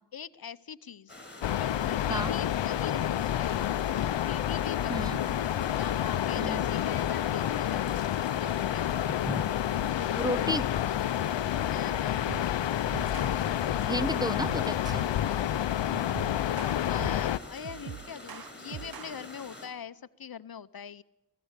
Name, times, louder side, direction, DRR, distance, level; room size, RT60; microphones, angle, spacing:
voice 1, 0.1-1.2 1.6-3.6 4.3-5.2 5.7-8.9 11.6-13.2 16.9-21.0, left 7 dB, 55° left, 14 dB, 0.8 m, -43 dB
sound 1, 1.1-19.7, left 1 dB, 25° left, 7.4 m, -47 dB
sound 2, 1.4-17.4, left 11 dB, 85° left, 0.6 m, -29 dB
voice 2, 10.2-10.7 13.8-15.1, equal, 10° right, 14 dB, 0.8 m, -32 dB
sound 3, 12.3-12.6 12.9-13.4 14.2-15.1 15.9-17.3 17.6-19.1, right 9 dB, 55° right, 0.7 m, -43 dB
23.5 x 15.5 x 8.2 m, 0.99 s
cardioid pair, 60°, 43 cm